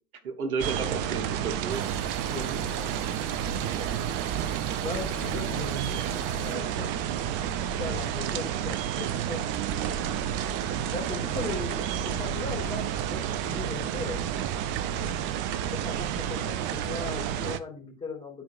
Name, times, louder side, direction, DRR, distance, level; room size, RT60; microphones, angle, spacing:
voice 1, 0.2-1.9 11.5-11.6, right 5 dB, 75° right, 1.5 m, -33 dB
sound 1, 0.6-17.6, right 9 dB, 25° right, 0.5 m, -30 dB
sound 2, 1.7-6.5, right 4 dB, 50° right, 3.0 m, -46 dB
voice 2, 2.3-2.9 3.6-3.9 4.8-6.9 7.8-9.4 10.9-14.2 15.8-18.4, left 3 dB, 15° left, 3.3 m, -38 dB
12.5 x 4.7 x 2.4 m
figure-of-eight pair, 100°, 44 cm